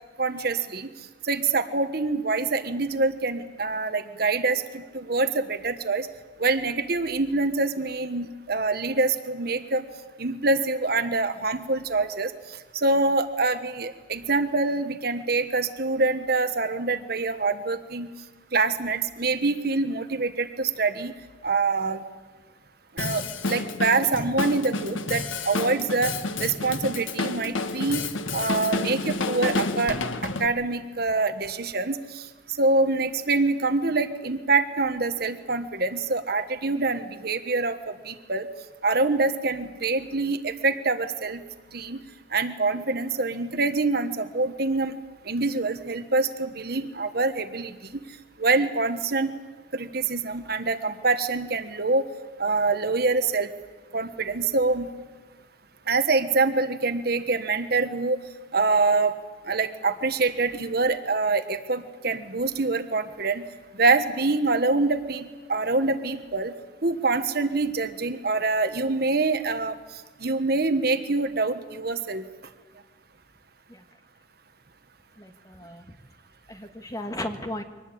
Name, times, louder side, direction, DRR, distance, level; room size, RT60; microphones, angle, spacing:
voice 1, 0.2-0.9 1.2-6.1 6.4-9.9 10.2-18.1 18.5-21.1 21.4-22.0 22.9-26.1 26.4-28.0 28.3-32.3 32.6-38.5 38.8-41.4 41.7-42.0 42.3-45.0 45.2-47.7 48.4-49.3 49.7-52.0 52.4-53.5 53.9-54.9 55.9-58.2 58.5-59.1 59.5-63.4 63.7-66.5 66.8-69.8 70.2-72.2, right 3 dB, 50° right, 9 dB, 1.3 m, -25 dB
Drum kit, 23.0-30.5, left 3 dB, 90° left, 1.4 m, -30 dB
voice 2, 75.2-76.0 76.5-77.6, left 1 dB, 20° left, 6 dB, 1.6 m, -35 dB
24.0 x 19.0 x 8.7 m, 1.4 s
head